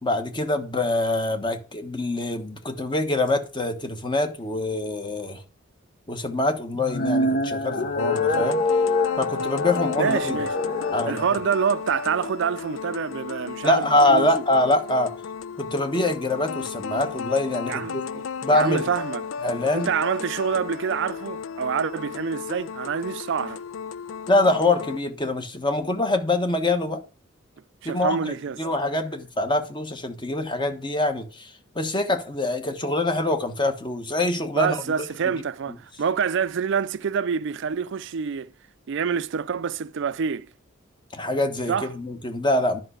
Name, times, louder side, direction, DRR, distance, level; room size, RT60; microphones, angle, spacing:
voice 1, 0.0-5.4 6.1-8.6 9.2-10.4 10.9-11.2 13.6-15.1 15.6-18.0 18.4-18.8 19.4-19.9 24.3-27.0 27.8-34.8 35.2-35.3 41.1-42.8, left 2 dB, 25° left, 1.2 m, -24 dB
sound 1, 6.7-11.1, left 2 dB, 50° left, 1.0 m, -25 dB
sound 2, 8.0-25.0, left 6 dB, 80° left, 0.4 m, -34 dB
voice 2, 10.0-10.5 11.1-14.3 17.7-18.2 18.5-19.2 19.7-23.6 27.8-28.6 34.6-38.5 38.9-40.5 41.7-41.9, right 6 dB, 65° right, 0.4 m, -26 dB
11.0 x 5.6 x 4.9 m
head